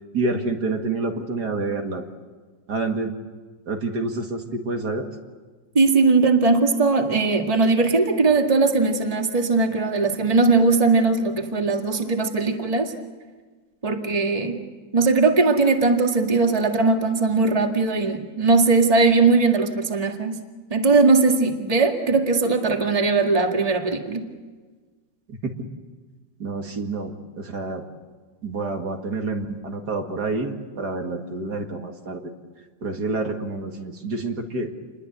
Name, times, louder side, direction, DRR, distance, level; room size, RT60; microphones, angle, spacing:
voice 1, 0.1-2.0 2.7-3.1 3.7-5.1 25.3-25.5 26.4-27.8 28.4-32.2 32.8-34.7, right 3 dB, 65° right, 3 dB, 2.6 m, -28 dB
voice 2, 5.7-12.9 13.8-14.6 14.9-20.4 20.7-24.2, right 3 dB, 20° right, 3 dB, 2.0 m, -19 dB
29.0 x 21.5 x 8.2 m, 1.4 s
omnidirectional pair, 1.9 m